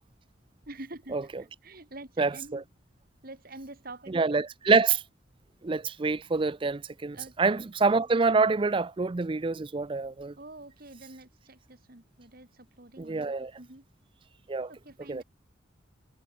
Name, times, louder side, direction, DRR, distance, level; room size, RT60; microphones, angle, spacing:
voice 1, 0.7-2.7 3.2-4.4 7.1-7.6 10.3-13.9 14.7-15.2, right 2 dB, 50° right, 2.6 m, -47 dB
voice 2, 2.2-2.6 4.1-5.0 5.6-10.3 13.0-13.5 14.5-14.7 15.1-15.2, right 4 dB, 25° right, 0.4 m, -26 dB
head